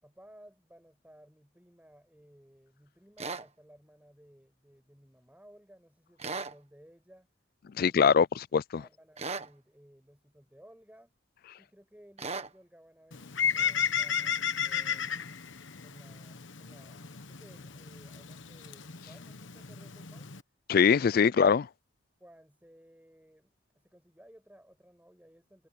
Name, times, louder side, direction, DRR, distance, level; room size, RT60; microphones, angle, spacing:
voice 1, 0.0-7.3 7.8-8.4 8.8-11.1 11.6-15.3 15.8-20.3 22.2-25.7, equal, 5° right, 7.6 m, -58 dB
sound 1, 3.2-3.5 6.2-6.6 9.2-9.5 12.2-12.5, right 4 dB, 30° right, 1.5 m, -36 dB
voice 2, 7.8-8.8 20.7-21.7, left 6 dB, 45° left, 0.3 m, -23 dB
Bird, 13.1-20.4, left 8 dB, 70° left, 1.2 m, -34 dB
head